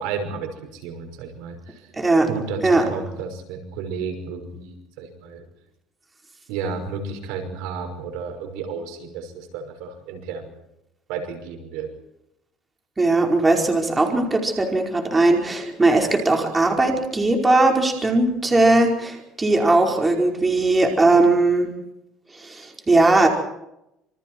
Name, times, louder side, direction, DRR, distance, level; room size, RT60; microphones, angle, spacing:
voice 1, 0.0-1.8 2.3-5.4 6.5-10.5 11.1-11.9, right 5 dB, 85° right, 5 dB, 5.9 m, -32 dB
voice 2, 2.0-2.3 2.6-2.8 13.0-21.7 22.3-23.3, right 2 dB, 15° right, 2 dB, 4.9 m, -19 dB
27.5 x 25.5 x 4.7 m, 0.84 s
cardioid pair, 135°, 0 cm